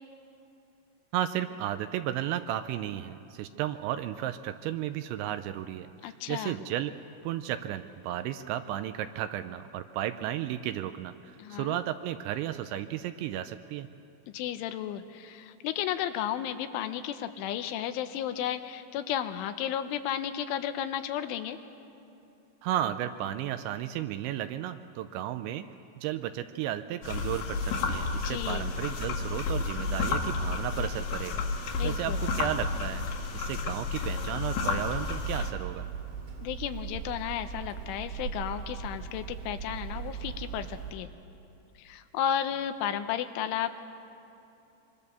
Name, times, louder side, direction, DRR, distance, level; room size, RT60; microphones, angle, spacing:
voice 1, 1.1-6.9 7.2-13.9 22.6-25.6 26.0-33.0 33.3-35.9, right 12 dB, 80° right, 10 dB, 2.8 m, -34 dB
voice 2, 6.0-6.6 11.4-11.8 14.3-21.6 28.1-28.7 31.8-32.2 36.4-41.1 41.8-43.8, left 10 dB, 85° left, 9 dB, 3.2 m, -33 dB
sound 1, 27.0-35.5, left 4 dB, 65° left, 3.5 m, -31 dB
Hammer, 34.6-40.9, right 7 dB, 60° right, 4.2 m, -39 dB
25.0 x 24.0 x 6.9 m, 2.9 s
omnidirectional pair, 5.6 m